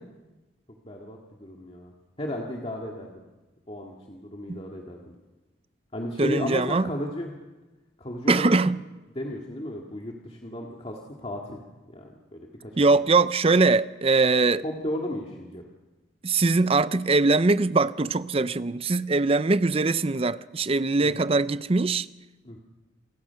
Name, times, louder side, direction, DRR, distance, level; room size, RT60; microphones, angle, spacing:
voice 1, 0.8-1.9 2.2-3.2 3.7-5.1 5.9-7.3 8.0-8.5 9.2-11.6 11.9-12.7 14.6-15.6 21.0-21.1 22.4-22.6, left 1 dB, 30° left, 1.9 m, -34 dB
voice 2, 6.2-6.9 8.3-8.8 12.8-14.6 16.2-22.1, right 3 dB, 30° right, 0.5 m, -22 dB
28.0 x 16.5 x 5.8 m
head